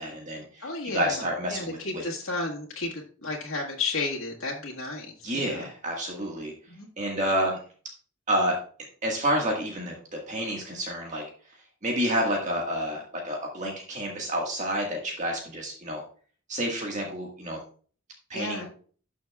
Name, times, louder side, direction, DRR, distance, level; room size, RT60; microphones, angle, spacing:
voice 1, 0.0-0.7 0.9-2.0 5.2-6.5 7.0-7.6 8.3-8.6 9.0-9.9 10.3-11.2 11.8-16.0 16.5-17.6 18.3-18.7, equal, 35° right, 0 dB, 1.6 m, -29 dB
voice 2, 0.6-1.2 1.5-5.1 5.3-5.7 6.7-6.9 18.3-18.7, left 3 dB, 90° left, -3 dB, 1.7 m, -32 dB
12.5 x 6.4 x 2.3 m, 0.42 s
head